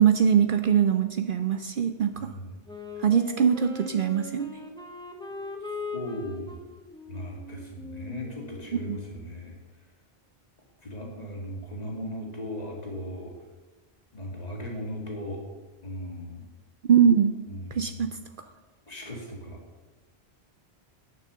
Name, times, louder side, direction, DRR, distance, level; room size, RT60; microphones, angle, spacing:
voice 1, 0.0-2.3 3.0-4.5 8.8-9.1 16.9-17.4 17.7-18.2, right 8 dB, 60° right, 8 dB, 0.7 m, -22 dB
voice 2, 2.1-2.5 5.9-6.6 7.1-9.6 10.8-13.3 14.1-15.4 15.8-16.5 17.5-17.9 18.9-19.6, equal, 40° left, 0 dB, 2.3 m, -37 dB
Wind instrument woodwind instrument, 2.7-9.2, left 3 dB, 5° left, 1.1 m, -40 dB
9.3 x 6.8 x 6.9 m, 1.2 s
omnidirectional pair, 1.1 m